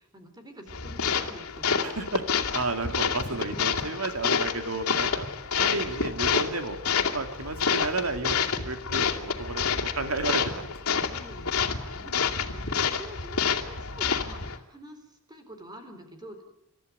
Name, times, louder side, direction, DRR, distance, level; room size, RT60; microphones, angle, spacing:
voice 1, 0.0-1.9 5.6-5.9 11.1-15.0 15.3-16.5, equal, 20° right, 6 dB, 4.0 m, -46 dB
sound 1, 0.7-14.6, left 6 dB, 85° left, 2.5 m, -28 dB
voice 2, 1.8-2.2 2.5-5.3 5.5-6.8 7.1-11.0, right 3 dB, 75° right, 7 dB, 2.6 m, -32 dB
28.0 x 13.5 x 9.6 m, 0.84 s
head